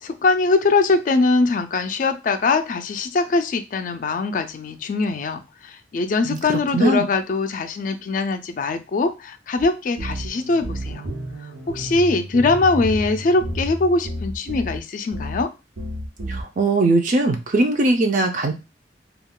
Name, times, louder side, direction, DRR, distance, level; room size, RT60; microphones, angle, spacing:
voice 1, 0.0-11.0 11.7-15.5, left 3 dB, 45° left, 9 dB, 0.3 m, -22 dB
voice 2, 6.2-7.1 16.3-18.5, right 2 dB, 45° right, 4 dB, 0.4 m, -20 dB
sound 1, 9.6-9.7 10.0-14.8 15.1-15.4 15.8-16.4, equal, 90° right, 0.8 m, -31 dB
2.3 x 2.2 x 3.6 m, 0.27 s
head